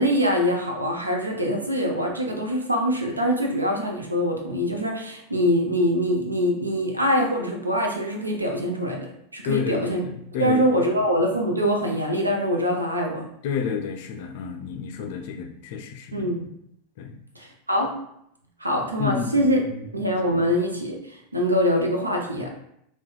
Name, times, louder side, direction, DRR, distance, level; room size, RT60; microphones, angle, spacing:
voice 1, 0.0-9.1 9.3-10.0 10.4-13.2 16.1-16.4 17.4-17.9 18.6-19.6 19.9-22.5, equal, 85° right, 1 dB, 0.5 m, -24 dB
voice 2, 9.4-10.8 13.4-16.5 17.0-17.2 19.0-19.5 20.3-20.5, left 6 dB, 55° left, 4 dB, 0.4 m, -30 dB
4.2 x 2.2 x 2.3 m, 0.74 s
figure-of-eight pair, 85°, 0 cm